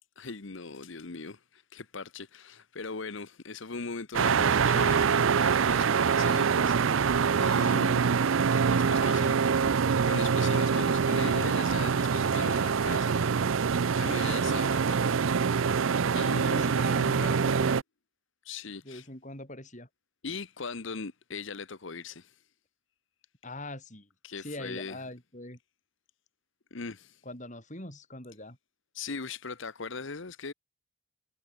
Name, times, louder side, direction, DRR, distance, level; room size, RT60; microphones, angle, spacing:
voice 1, 0.2-8.0 8.7-9.7 10.1-13.2 14.0-15.5 16.1-16.7 18.4-19.0 20.2-22.4 24.2-25.0 26.7-27.2 28.9-30.5, left 4 dB, 60° left, 1.0 m, -40 dB
sound 1, 4.1-17.8, right 6 dB, 65° right, 0.5 m, -25 dB
voice 2, 7.6-7.9 14.2-14.5 16.6-17.8 18.8-19.9 23.4-24.1 24.4-25.6 27.2-28.6, left 1 dB, 35° left, 6.6 m, -43 dB
head